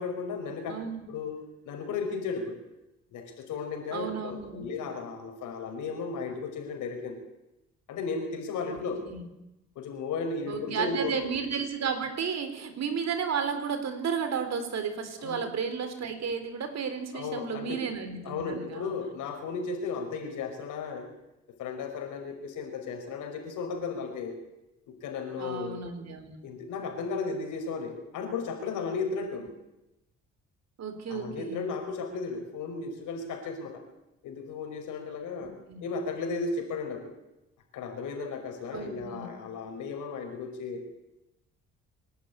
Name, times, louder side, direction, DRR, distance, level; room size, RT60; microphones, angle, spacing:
voice 1, 0.0-0.8 1.1-1.4 1.6-2.6 3.1-7.2 7.9-9.0 9.8-11.3 15.2-15.5 17.1-17.8 18.2-21.1 21.6-24.4 24.9-25.8 26.4-29.5 31.1-33.8 34.2-35.5 35.8-37.1 37.7-40.8, left 4 dB, 85° left, 4 dB, 5.4 m, -35 dB
voice 2, 0.7-1.1 3.9-4.7 8.7-9.2 10.5-18.9 25.4-26.4 30.8-31.7 35.4-35.8 38.7-39.3, right 6 dB, 60° right, 9 dB, 3.8 m, -33 dB
25.0 x 11.5 x 9.6 m, 0.92 s
cardioid pair, 90°, 30 cm